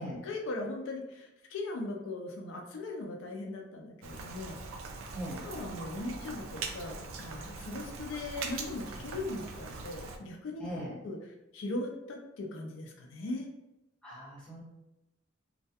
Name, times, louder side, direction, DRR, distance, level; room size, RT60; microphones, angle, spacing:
voice 1, 0.2-4.6 5.4-10.7 11.0-11.2 11.5-13.5, left 2 dB, 75° left, 2 dB, 0.4 m, -39 dB
Rain, 4.0-10.2, right 4 dB, 85° right, 0.3 m, -42 dB
voice 2, 5.1-5.4 10.6-10.9 14.0-14.6, equal, 5° left, -9 dB, 0.8 m, -39 dB
2.3 x 2.1 x 2.7 m, 0.94 s
head